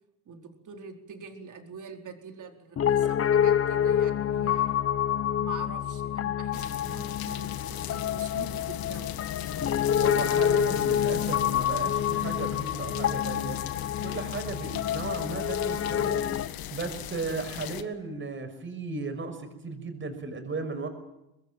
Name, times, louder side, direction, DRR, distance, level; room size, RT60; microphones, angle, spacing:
voice 1, 0.3-4.8 5.4-9.1, right 5 dB, 45° right, 4 dB, 4.4 m, -45 dB
Piano, 2.8-16.5, left 9 dB, 35° left, 0.9 m, -27 dB
sound 1, 6.5-17.8, left 11 dB, 55° left, 1.7 m, -38 dB
voice 2, 10.0-13.6 14.0-16.4 16.7-20.9, right 3 dB, 30° right, 7 dB, 6.1 m, -35 dB
24.0 x 20.5 x 9.1 m, 0.88 s
cardioid pair, 110°, 41 cm